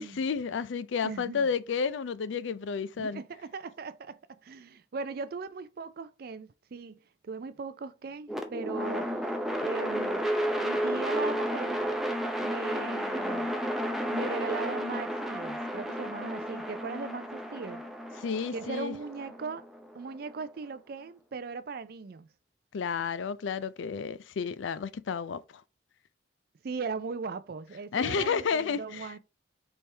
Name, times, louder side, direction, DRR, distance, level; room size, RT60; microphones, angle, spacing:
voice 1, 0.0-3.2 18.2-19.0 22.7-25.4 27.9-29.1, left 6 dB, 70° left, 0.4 m, -31 dB
voice 2, 1.0-1.5 3.0-9.2 9.6-10.2 10.6-11.8 12.4-13.6 14.1-17.8 18.5-19.7 19.9-22.3 26.6-29.2, right 4 dB, 50° right, 0.4 m, -38 dB
sound 1, 8.3-20.4, equal, ahead, 0.6 m, -32 dB
4.3 x 3.4 x 3.3 m
head